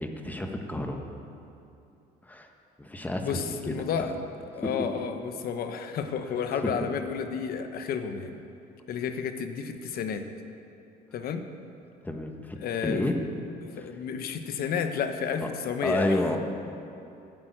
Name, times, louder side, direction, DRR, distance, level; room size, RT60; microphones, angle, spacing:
voice 1, 0.0-1.0 2.3-2.5 2.8-3.8 12.0-12.6 12.8-13.2 15.8-16.4, left 1 dB, 10° left, 4 dB, 1.3 m, -30 dB
voice 2, 3.2-4.2 4.5-8.4 8.9-10.2 11.1-11.4 12.6-13.0 13.8-16.2, left 7 dB, 60° left, 7 dB, 1.1 m, -31 dB
11.5 x 8.8 x 8.9 m, 2.8 s
cardioid pair, 110°, 17 cm